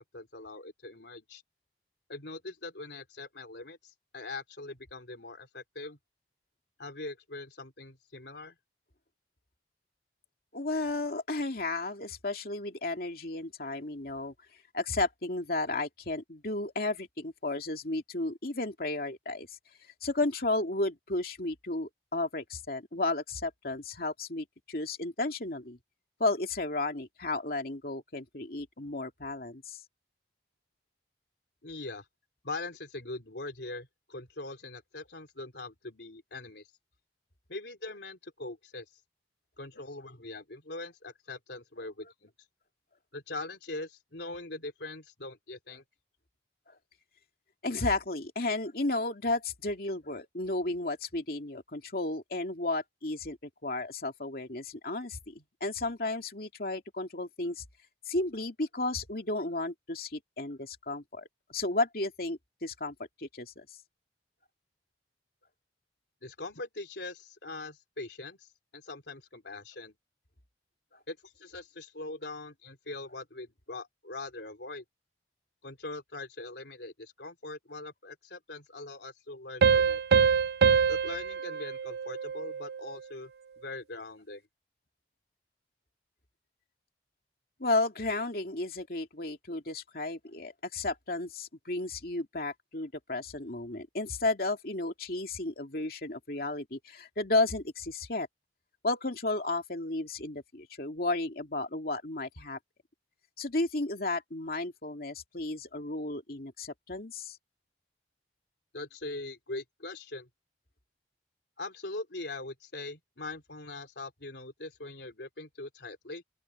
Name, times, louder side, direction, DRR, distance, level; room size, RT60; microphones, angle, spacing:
voice 1, 0.1-1.4 2.1-6.0 6.8-8.6 31.6-32.1 32.4-36.6 37.5-39.0 39.6-42.3 43.1-45.8 66.2-68.5 68.7-69.9 71.1-74.8 75.6-80.0 80.9-83.3 83.6-84.4 108.7-110.3 111.6-116.2, left 2 dB, 75° left, 3.4 m, -42 dB
voice 2, 10.5-14.3 14.7-19.6 20.0-25.8 26.2-29.8 46.7-46.8 47.6-57.6 58.1-63.7 70.9-71.0 87.6-98.3 98.8-102.6 103.4-107.4, left 2 dB, 55° left, 2.6 m, -33 dB
sound 1, 79.6-82.9, right 6 dB, 60° right, 0.5 m, -25 dB
open air
head